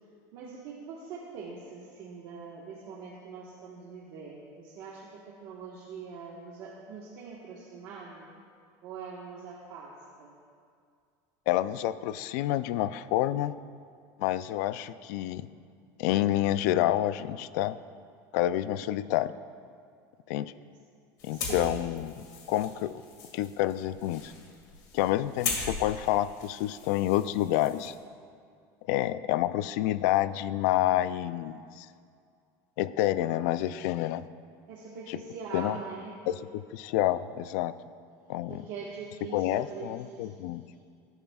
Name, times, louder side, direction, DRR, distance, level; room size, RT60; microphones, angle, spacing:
voice 1, 0.3-8.3 8.8-10.3 21.3-21.9 24.2-24.3 34.7-36.2 38.5-40.3, right 5 dB, 55° right, -4 dB, 1.4 m, -43 dB
voice 2, 11.5-13.5 14.2-15.5 16.0-17.8 18.3-19.3 20.3-20.5 21.2-22.2 22.5-22.9 23.3-24.3 24.9-27.9 28.9-31.9 32.8-34.2 35.1-35.2 35.5-35.8 36.3-37.7 38.3-38.7 39.3-40.6, left 13 dB, 70° left, 14 dB, 0.4 m, -28 dB
sound 1, 21.2-27.9, left 4 dB, 45° left, 2.1 m, -39 dB
17.5 x 11.0 x 2.4 m, 2.3 s
cardioid pair, 165°, 9 cm